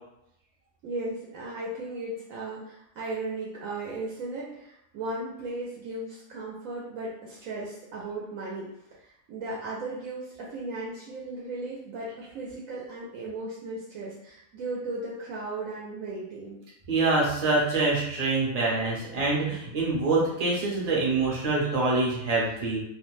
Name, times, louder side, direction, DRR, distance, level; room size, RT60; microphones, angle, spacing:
voice 1, 0.8-16.6, right 2 dB, 75° right, -4 dB, 0.9 m, -36 dB
voice 2, 16.9-22.8, right 3 dB, 40° right, -4 dB, 0.6 m, -25 dB
2.4 x 2.1 x 3.1 m, 0.80 s
omnidirectional pair, 1.5 m